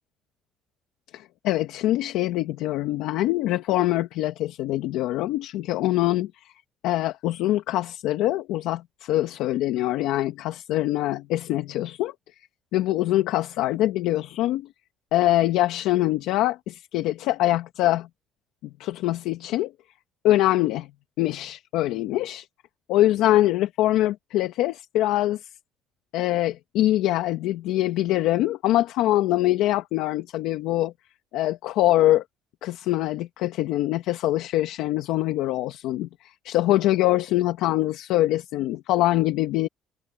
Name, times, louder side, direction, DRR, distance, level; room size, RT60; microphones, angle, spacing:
voice 1, 1.1-6.5 6.8-12.1 12.7-14.7 15.1-18.1 18.6-19.7 20.2-20.9 21.2-22.5 22.9-25.4 26.1-30.9 31.3-32.2 32.6-39.7, left 15 dB, 80° left, 1.7 m, -24 dB
cardioid pair, 140°, 0 cm